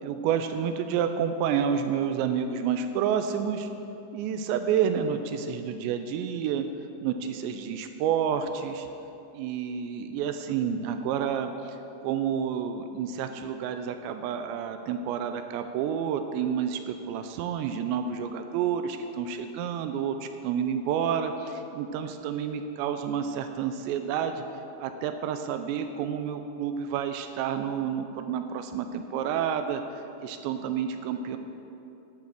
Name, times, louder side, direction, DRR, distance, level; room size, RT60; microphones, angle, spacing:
voice 1, 0.0-3.7 4.1-6.7 7.0-8.9 9.3-29.8 30.2-31.4, right 8 dB, 85° right, 8 dB, 2.7 m, -29 dB
11.5 x 6.3 x 6.7 m, 2.8 s
omnidirectional pair, 5.2 m